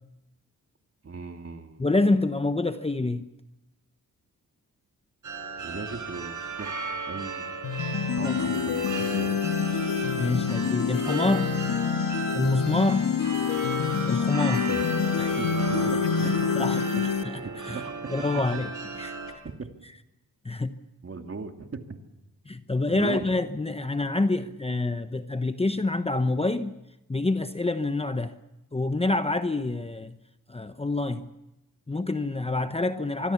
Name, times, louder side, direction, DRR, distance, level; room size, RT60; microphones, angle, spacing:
voice 1, 1.0-1.8 5.6-7.6 8.1-9.4 14.7-14.9 15.4-16.1 17.7-17.9 19.6-19.7 21.0-21.8 22.9-23.3, right 4 dB, 40° right, 5 dB, 2.4 m, -38 dB
voice 2, 1.8-3.3 8.2-8.4 10.2-11.6 12.3-13.1 14.1-14.6 15.2-15.4 16.2-17.8 18.1-18.7 19.0-19.1 20.4-20.7 22.5-26.7 27.1-28.3 28.7-30.2 30.5-31.3 31.9-33.3, left 2 dB, 15° left, 9 dB, 0.9 m, -27 dB
sound 1, 5.2-19.3, right 4 dB, 60° right, 5.2 m, -35 dB
sound 2, 7.6-17.2, left 7 dB, 70° left, 1.5 m, -27 dB
25.5 x 23.5 x 7.1 m, 0.94 s
wide cardioid pair, 110°, 35 cm